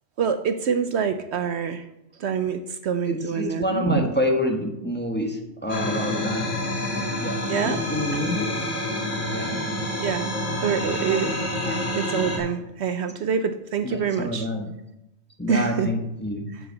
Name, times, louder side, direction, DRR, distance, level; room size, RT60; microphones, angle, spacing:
voice 1, 0.2-1.8 2.2-4.1 7.5-7.8 8.1-8.2 10.0-10.3 10.6-11.4 11.9-14.5 15.5-15.9 16.5-16.6, right 7 dB, 65° right, 9 dB, 0.9 m, -26 dB
voice 2, 3.1-6.5 7.2-8.5 9.3-9.6 11.1-11.2 11.6-11.8 13.8-14.7 15.4-16.5, left 1 dB, 10° left, 2 dB, 1.4 m, -27 dB
sound 1, 5.7-12.4, left 1 dB, 80° left, 3.2 m, -28 dB
7.2 x 6.8 x 7.5 m, 0.88 s
omnidirectional pair, 1.3 m